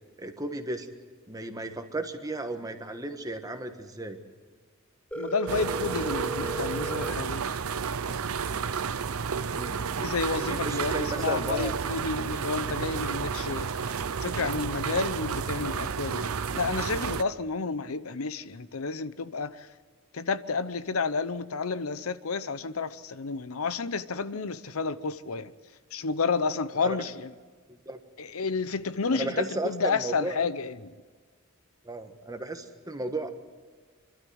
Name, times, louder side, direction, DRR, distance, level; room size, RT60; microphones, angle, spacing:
voice 1, 0.2-0.9 1.3-4.2 9.5-9.8 10.4-11.7 26.7-27.1 27.7-28.0 29.1-30.5 31.8-33.3, right 2 dB, 15° right, 1.4 m, -34 dB
Telephone, 5.1-7.1, right 1 dB, 5° left, 0.7 m, -35 dB
voice 2, 5.2-7.5 10.0-13.9 14.2-19.5 20.1-25.5 25.9-27.3 28.2-30.9, left 4 dB, 85° left, 0.8 m, -31 dB
sound 1, 5.5-17.2, right 6 dB, 85° right, 0.7 m, -31 dB
26.0 x 12.5 x 8.0 m
head